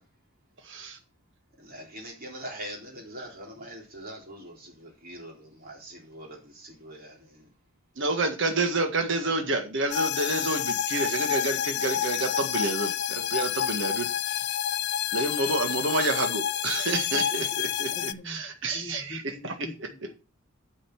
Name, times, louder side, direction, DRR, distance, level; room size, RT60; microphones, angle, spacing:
voice 1, 0.6-1.0 8.0-14.5 15.1-19.5, right 2 dB, 60° right, 1.7 m, -29 dB
voice 2, 1.6-7.4, right 1 dB, 45° right, 3.9 m, -43 dB
sound 1, 9.9-18.1, left 10 dB, 50° left, 0.4 m, -29 dB
voice 3, 16.8-17.4 17.9-20.1, left 2 dB, 25° left, 1.6 m, -44 dB
9.0 x 5.7 x 6.0 m
head